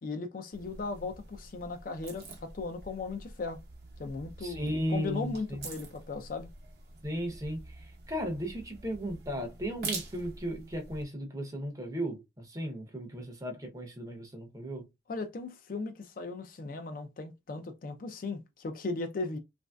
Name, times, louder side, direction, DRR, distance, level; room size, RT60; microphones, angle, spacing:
voice 1, 0.0-3.6 4.0-6.5 15.1-19.4, left 3 dB, 50° left, 0.4 m, -37 dB
sound 1, 0.5-11.0, right 3 dB, 60° right, 0.8 m, -45 dB
voice 2, 4.4-5.7 7.0-14.9, equal, 20° right, 0.6 m, -36 dB
3.1 x 2.6 x 2.2 m
head